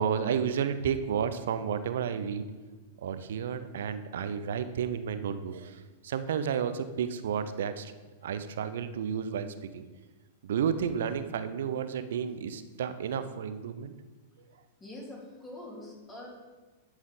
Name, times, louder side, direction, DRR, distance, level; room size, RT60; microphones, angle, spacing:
voice 1, 0.0-2.5 3.0-7.9 8.2-9.8 10.4-13.9, right 7 dB, 65° right, 11 dB, 0.7 m, -32 dB
voice 2, 14.8-16.3, left 1 dB, 20° left, -5 dB, 2.9 m, -44 dB
11.0 x 6.3 x 3.9 m, 1.3 s
figure-of-eight pair, 100°, 0 cm